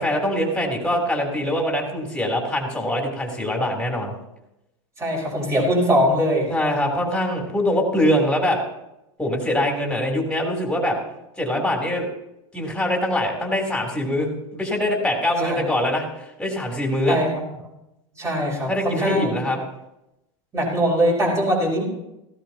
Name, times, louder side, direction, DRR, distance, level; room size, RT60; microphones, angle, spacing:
voice 1, 0.0-4.1 6.5-8.6 9.2-11.0 11.4-12.1 12.5-17.2 18.7-19.6, left 1 dB, 5° left, 1 dB, 3.7 m, -23 dB
voice 2, 5.0-6.5 15.4-15.6 17.1-17.3 18.1-19.3 20.5-21.8, equal, 20° right, -1 dB, 6.0 m, -21 dB
17.5 x 16.0 x 3.0 m, 0.89 s
hypercardioid pair, 120°, 16 cm